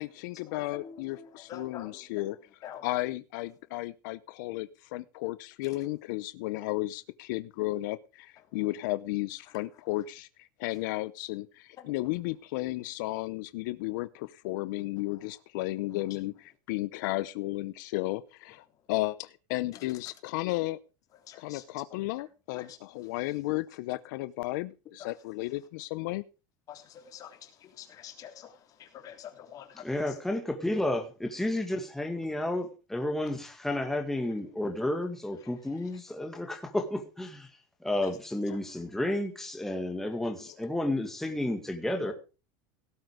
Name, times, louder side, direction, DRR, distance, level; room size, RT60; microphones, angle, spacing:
voice 1, 0.0-2.4 2.8-20.8 21.4-26.2, left 18 dB, 75° left, 0.7 m, -34 dB
voice 2, 0.5-2.0 2.6-2.9 11.8-11.9 15.9-16.0 21.3-21.6 22.6-22.8 26.7-27.5 27.8-28.5 28.8-29.8 42.0-42.1, left 9 dB, 35° left, 3.3 m, -46 dB
voice 3, 29.7-37.5 37.8-42.1, left 1 dB, 5° left, 1.9 m, -31 dB
17.5 x 7.9 x 5.0 m
supercardioid pair, 155°, 10 cm